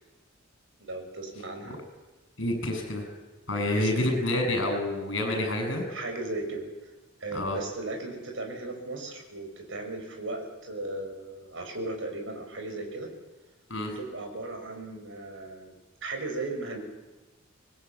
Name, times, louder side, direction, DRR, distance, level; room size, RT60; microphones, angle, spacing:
voice 1, 0.8-1.8 3.7-4.3 5.9-6.6 7.2-13.1 14.0-15.8 16.0-16.8, right 2 dB, 65° right, 4 dB, 6.1 m, -36 dB
voice 2, 2.4-3.0 3.5-5.8 7.3-7.6 13.7-13.9, left 1 dB, 65° left, 4 dB, 7.7 m, -28 dB
25.0 x 20.5 x 8.7 m, 1.1 s
head